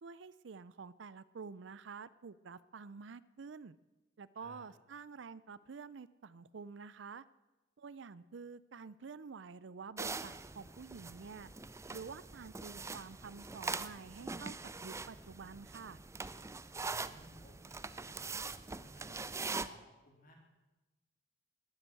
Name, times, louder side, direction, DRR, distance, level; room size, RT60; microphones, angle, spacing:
voice 1, 0.0-3.8 4.2-7.2 7.8-11.5 11.9-14.5 14.8-16.0, right 5 dB, 70° right, 18 dB, 0.5 m, -49 dB
sound 1, 10.0-19.7, right 4 dB, 15° right, 0.5 m, -43 dB
voice 2, 16.8-18.4 18.8-20.3, equal, 45° left, 0 dB, 3.8 m, -59 dB
20.5 x 8.0 x 7.6 m, 1.1 s
head